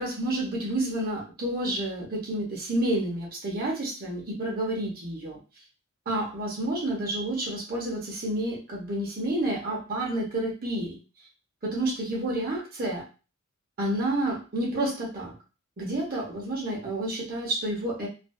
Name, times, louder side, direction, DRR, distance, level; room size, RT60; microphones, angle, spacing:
voice 1, 0.0-5.4 6.1-11.0 11.6-13.0 13.8-15.3 15.8-18.1, right 1 dB, 45° right, -2 dB, 0.8 m, -29 dB
2.5 x 2.3 x 2.2 m, 0.33 s
head